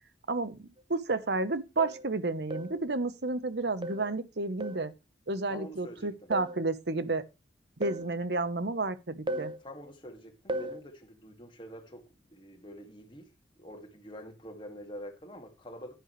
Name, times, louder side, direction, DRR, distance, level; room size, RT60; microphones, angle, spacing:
voice 1, 0.3-4.9 5.3-7.2 7.8-9.5, right 3 dB, 65° right, 1.0 m, -31 dB
sound 1, 0.8-0.9 1.8-2.1 2.5-2.8 3.8-4.1 4.6-4.9 6.3-6.6 7.8-8.1 9.3-9.6 10.5-10.8, right 1 dB, 25° right, 0.7 m, -36 dB
voice 2, 5.5-6.3 9.6-12.0 12.3-13.3 13.6-15.9, equal, 25° left, 2.2 m, -46 dB
10.5 x 10.0 x 3.2 m
head